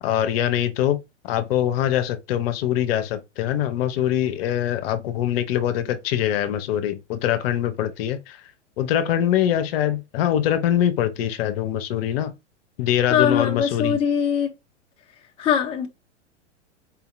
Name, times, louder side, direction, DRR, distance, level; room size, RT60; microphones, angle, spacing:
voice 1, 0.0-1.0 1.2-8.4 8.8-12.3 12.8-14.0, left 11 dB, 55° left, 0.7 m, -23 dB
voice 2, 13.1-14.5 15.4-15.9, left 8 dB, 15° left, 0.5 m, -21 dB
4.3 x 2.8 x 2.5 m
hypercardioid pair, 105°, 37 cm